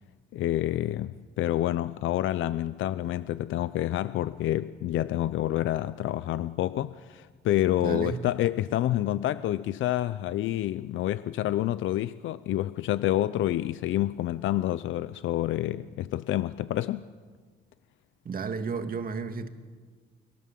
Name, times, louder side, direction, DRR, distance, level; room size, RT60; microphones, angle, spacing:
voice 1, 0.3-17.1, left 13 dB, 80° left, 0.7 m, -28 dB
voice 2, 7.8-8.3 18.2-19.5, right 5 dB, 45° right, 2.4 m, -32 dB
29.5 x 22.5 x 7.6 m
cardioid pair, 90°, 20 cm